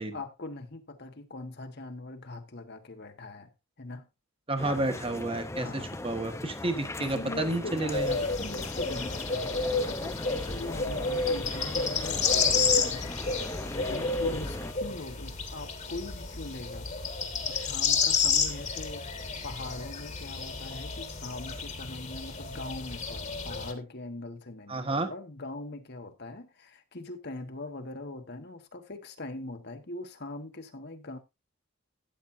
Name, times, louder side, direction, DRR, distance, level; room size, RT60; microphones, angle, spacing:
voice 1, 0.0-3.5 3.8-4.1 5.6-6.0 7.0-13.1 13.9-16.9 17.5-19.1 19.4-31.2, left 2 dB, 50° left, 1.2 m, -41 dB
voice 2, 4.5-8.1 24.7-25.1, right 2 dB, 25° right, 1.3 m, -31 dB
sound 1, 4.6-14.7, left 1 dB, 15° left, 0.6 m, -39 dB
sound 2, 7.9-23.7, left 4 dB, 30° left, 1.6 m, -30 dB
12.5 x 9.1 x 2.6 m
head